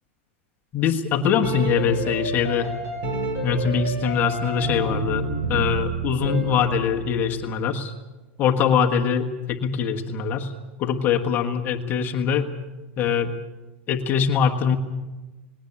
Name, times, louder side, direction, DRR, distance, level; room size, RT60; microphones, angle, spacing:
voice 1, 0.7-2.7 3.4-7.9 8.4-10.5 10.8-12.5 13.0-13.3 13.9-14.8, left 7 dB, 25° left, 3 dB, 1.4 m, -23 dB
sound 1, 1.1-7.2, right 1 dB, 30° right, 6.5 m, -29 dB
20.0 x 18.0 x 8.7 m, 1.2 s
supercardioid pair, 155°, 7 cm